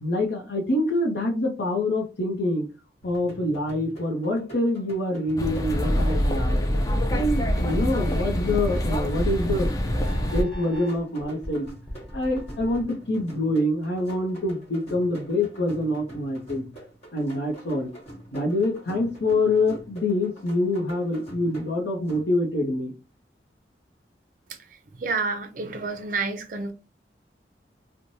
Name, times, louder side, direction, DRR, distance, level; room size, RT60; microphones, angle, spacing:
voice 1, 0.0-2.7 3.0-6.6 7.1-9.7 10.1-11.7 12.1-16.6 17.1-17.9 18.3-22.9, left 1 dB, 75° left, 0.7 m, -26 dB
sound 1, 3.0-22.7, right 1 dB, 35° left, 1.2 m, -45 dB
sound 2, 5.4-10.4, equal, 20° left, 0.4 m, -25 dB
sound 3, 6.7-12.8, equal, 5° right, 0.9 m, -40 dB
voice 2, 24.5-26.7, right 4 dB, 45° right, 0.5 m, -30 dB
3.0 x 2.1 x 2.6 m
head